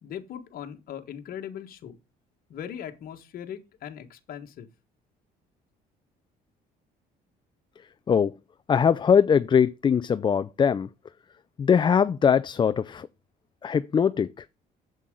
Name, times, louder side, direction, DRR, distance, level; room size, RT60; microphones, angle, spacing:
voice 1, 0.0-2.0 2.5-4.7, left 9 dB, 60° left, 1.6 m, -39 dB
voice 2, 8.7-10.9 11.6-13.1 13.6-14.4, left 7 dB, 30° left, 0.4 m, -21 dB
8.1 x 7.8 x 3.8 m
cardioid pair, 110°, 17 cm